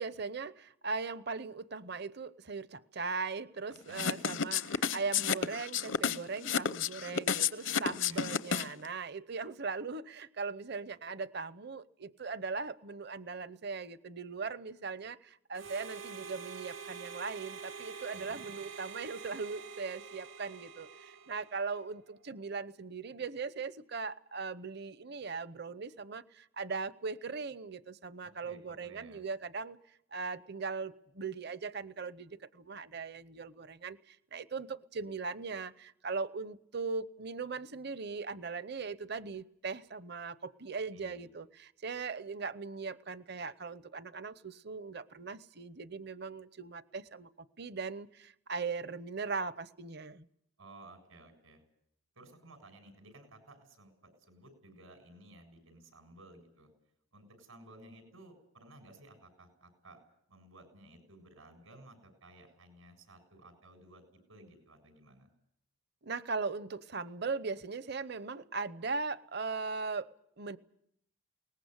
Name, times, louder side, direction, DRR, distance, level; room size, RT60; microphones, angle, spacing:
voice 1, 0.0-29.8 30.1-47.3 47.6-50.3 66.0-70.6, right 4 dB, 50° right, 15 dB, 0.8 m, -39 dB
sound 1, 3.9-8.9, left 7 dB, 65° left, 0.8 m, -31 dB
voice 2, 3.9-4.2 7.8-8.3 18.1-18.5 28.2-29.3 40.9-41.3 50.6-51.6 52.2-56.7 57.1-60.0 60.3-64.0 64.3-65.3, right 2 dB, 90° right, 6 dB, 7.4 m, -56 dB
Harmonica, 15.5-21.9, right 6 dB, 65° right, 1.1 m, -46 dB
21.5 x 19.5 x 8.1 m, 0.72 s
head